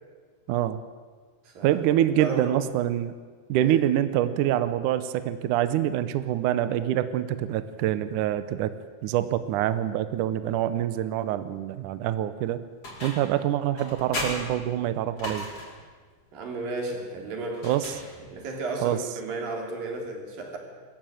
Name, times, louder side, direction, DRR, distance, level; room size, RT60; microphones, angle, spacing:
voice 1, 0.5-0.8 1.6-3.1 3.5-8.7 9.0-12.6 13.0-15.5 17.6-17.9 18.8-19.0, right 12 dB, 85° right, 12 dB, 1.8 m, -25 dB
voice 2, 1.4-1.8 2.2-2.6 3.6-3.8 16.3-17.7 18.3-20.6, right 2 dB, 55° right, 2 dB, 4.7 m, -33 dB
sound 1, 12.8-13.4 13.8-15.9 17.5-18.5, left 1 dB, 35° left, 5.9 m, -36 dB
22.5 x 14.5 x 9.0 m, 1.5 s
omnidirectional pair, 4.8 m